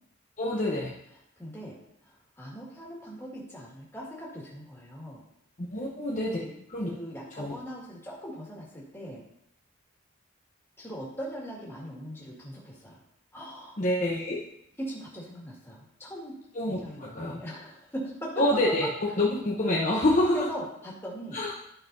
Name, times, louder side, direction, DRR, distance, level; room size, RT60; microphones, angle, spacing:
voice 1, 0.4-0.9 5.6-6.4 6.7-6.9 7.4-7.5 13.8-14.4 16.5-17.4 18.4-20.5 21.3-21.5, left 1 dB, 40° left, -3 dB, 0.8 m, -27 dB
voice 2, 1.4-1.7 2.0-5.2 6.4-6.5 6.9-9.2 10.8-13.0 13.3-13.8 14.8-16.3 16.7-18.3 20.3-21.4, equal, 10° left, -5 dB, 1.9 m, -40 dB
12.0 x 5.6 x 2.7 m, 0.76 s
head